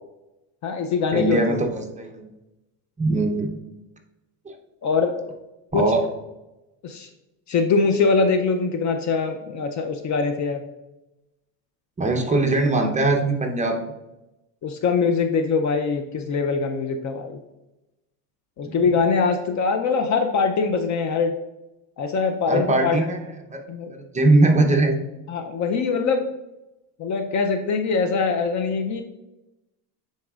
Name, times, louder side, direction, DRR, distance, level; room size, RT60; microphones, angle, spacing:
voice 1, 0.6-1.6 4.8-5.2 5.7-5.9 6.8-7.1 7.5-10.7 14.6-17.4 18.6-21.3 22.0-23.0 23.7-23.9 25.3-26.3 27.0-29.0, left 4 dB, 40° left, 6 dB, 0.5 m, -23 dB
voice 2, 1.1-2.3 3.0-3.5 4.4-4.6 5.7-6.0 12.0-13.9 18.6-18.7 22.5-23.2 23.5-23.6 23.9-25.0, right 2 dB, 15° right, 3 dB, 0.7 m, -21 dB
9.6 x 4.2 x 2.4 m, 0.99 s
cardioid pair, 120°, 46 cm